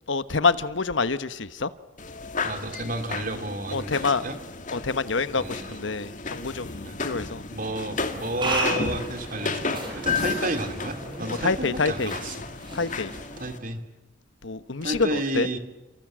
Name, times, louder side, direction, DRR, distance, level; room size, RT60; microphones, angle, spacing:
voice 1, 0.1-1.7 3.7-4.2 4.7-7.4 11.4-12.1 12.7-13.1 14.4-15.5, left 4 dB, 75° left, 13 dB, 1.1 m, -26 dB
sound 1, 2.0-13.6, left 4 dB, 40° left, 2.1 m, -33 dB
voice 2, 2.4-4.4 5.4-5.8 6.8-7.0 7.5-12.4 13.4-13.8 14.8-15.6, right 2 dB, 45° right, 7 dB, 2.8 m, -31 dB
sound 2, 8.0-13.6, right 1 dB, 25° right, 7.6 m, -35 dB
29.0 x 27.0 x 7.5 m, 1.0 s
head